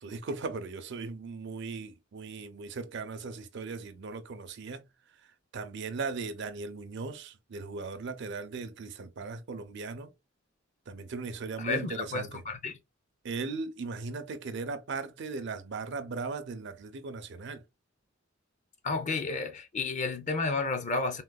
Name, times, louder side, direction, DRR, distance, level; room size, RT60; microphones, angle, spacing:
voice 1, 0.0-4.9 5.5-10.1 10.9-12.4 13.2-17.6, right 4 dB, 60° right, 0.5 m, -38 dB
voice 2, 11.6-12.8 18.8-21.2, left 3 dB, 35° left, 0.5 m, -31 dB
3.7 x 2.1 x 2.2 m
head